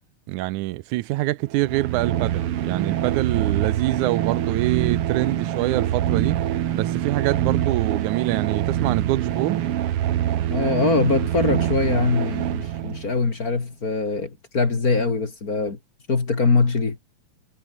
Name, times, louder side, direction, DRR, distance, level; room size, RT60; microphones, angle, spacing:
voice 1, 0.3-6.4 6.7-9.6, right 18 dB, 80° right, 2.0 m, -25 dB
sound 1, 1.5-13.2, right 11 dB, 60° right, 1.6 m, -25 dB
voice 2, 10.5-15.8 16.1-17.0, left 4 dB, 30° left, 2.5 m, -22 dB
omnidirectional pair, 3.7 m